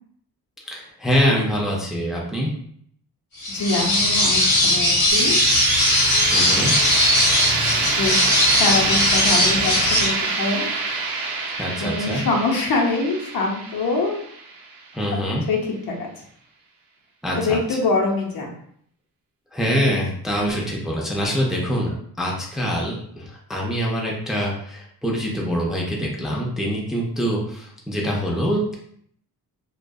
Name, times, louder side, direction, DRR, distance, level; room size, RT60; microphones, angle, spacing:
voice 1, 0.7-2.5 6.3-6.7 11.6-12.2 14.9-15.4 17.2-17.8 19.5-28.7, equal, ahead, -3 dB, 0.4 m, -24 dB
sound 1, 3.4-10.1, left 1 dB, 50° left, 1.2 m, -19 dB
voice 2, 3.5-5.4 7.2-7.4 8.0-10.7 11.8-14.1 15.5-15.6 15.9-16.1 17.3-18.5, left 3 dB, 70° left, -1 dB, 0.7 m, -24 dB
sound 2, 5.1-14.9, right 3 dB, 70° right, 0.6 m, -25 dB
2.5 x 2.3 x 2.2 m, 0.64 s
wide cardioid pair, 110°, 37 cm